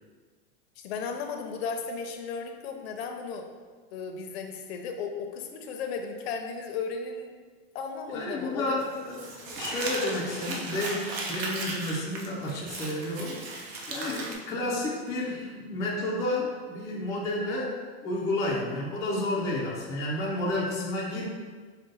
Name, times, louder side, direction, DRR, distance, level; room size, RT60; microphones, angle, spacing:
voice 1, 0.8-3.5 3.9-7.3 7.7-8.8, left 5 dB, 80° left, 4 dB, 0.6 m, -35 dB
voice 2, 8.1-13.4 13.9-21.3, left 1 dB, 10° left, -5 dB, 0.3 m, -31 dB
Crumpling crinkling, 8.8-14.3, right 2 dB, 80° right, 0.9 m, -36 dB
5.2 x 2.1 x 3.8 m, 1.5 s
supercardioid pair, 170°, 31 cm